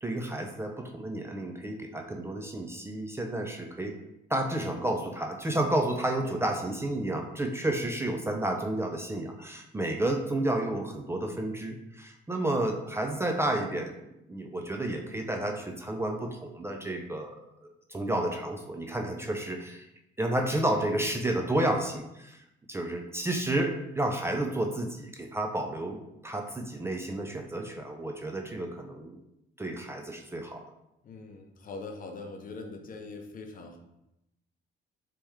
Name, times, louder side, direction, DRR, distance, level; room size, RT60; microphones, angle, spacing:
voice 1, 0.0-4.0 4.3-13.9 14.3-17.4 17.9-19.9 20.2-22.4 22.7-29.2 29.6-30.6, right 1 dB, 15° right, 2 dB, 0.4 m, -31 dB
voice 2, 31.0-33.8, left 3 dB, 45° left, 4 dB, 0.6 m, -42 dB
3.4 x 3.0 x 3.1 m, 0.86 s
cardioid pair, 95°, 20 cm